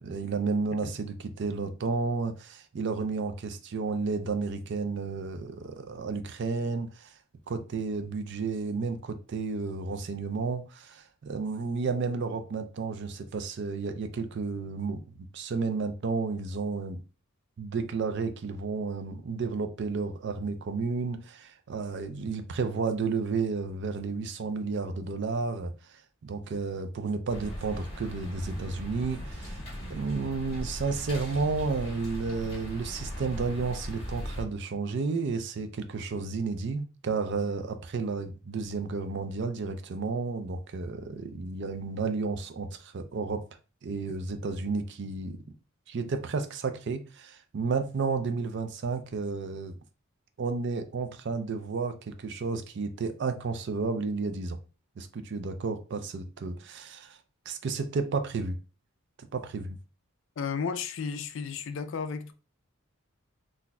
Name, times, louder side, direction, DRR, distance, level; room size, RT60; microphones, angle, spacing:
voice 1, 0.0-7.1 7.5-15.0 15.3-17.0 17.6-29.6 29.9-43.4 43.8-45.4 45.9-49.8 50.4-54.6 55.0-57.2 57.5-58.6 59.2-59.8, right 4 dB, 55° right, 0.4 m, -32 dB
sound 1, 27.3-34.4, equal, 25° left, 1.5 m, -38 dB
voice 2, 60.4-62.3, left 6 dB, 60° left, 0.4 m, -33 dB
4.0 x 2.6 x 2.2 m
head